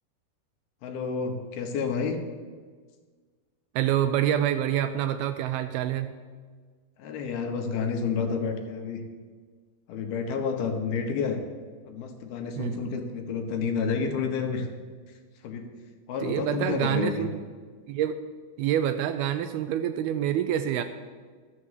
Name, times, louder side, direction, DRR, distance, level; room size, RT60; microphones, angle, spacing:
voice 1, 0.8-2.2 7.0-9.0 9.9-11.4 11.8-14.7 15.4-15.7 16.1-17.3, left 5 dB, 70° left, 4 dB, 2.9 m, -30 dB
voice 2, 3.8-6.2 12.6-12.8 16.2-17.4 17.9-18.2 18.6-20.8, right 10 dB, 80° right, 9 dB, 2.3 m, -27 dB
13.5 x 7.2 x 8.1 m, 1.6 s
omnidirectional pair, 4.8 m